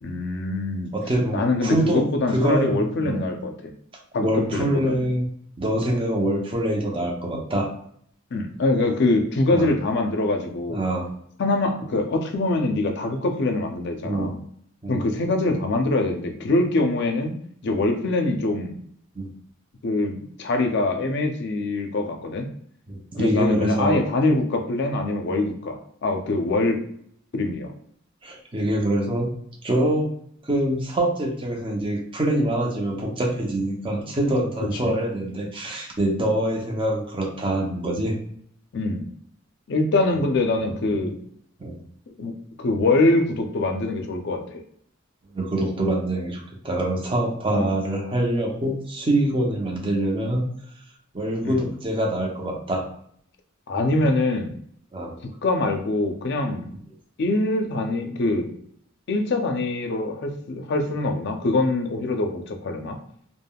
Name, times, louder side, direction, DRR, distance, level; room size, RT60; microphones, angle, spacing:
voice 1, 0.0-0.9 1.3-3.7 4.1-5.1 8.3-10.8 11.4-14.3 14.9-17.3 17.6-18.8 19.8-22.5 23.2-26.8 27.3-27.7 34.8-34.9 38.7-39.1 39.7-41.2 42.2-42.3 42.6-44.6 47.5-47.7 51.4-51.6 53.7-54.5 55.4-56.7 57.2-58.5 59.1-63.0, left 2 dB, 60° left, 4 dB, 0.5 m, -24 dB
voice 2, 0.9-3.3 4.2-5.3 5.6-7.7 9.5-9.7 10.7-11.1 14.0-14.4 14.8-15.1 19.1-19.3 22.9-24.0 28.2-29.3 29.6-30.1 30.4-38.1 40.8-41.0 41.6-41.8 45.3-50.4 51.1-52.8 54.9-55.2, right 1 dB, 25° right, -1 dB, 0.6 m, -25 dB
3.4 x 2.1 x 2.2 m, 0.65 s
head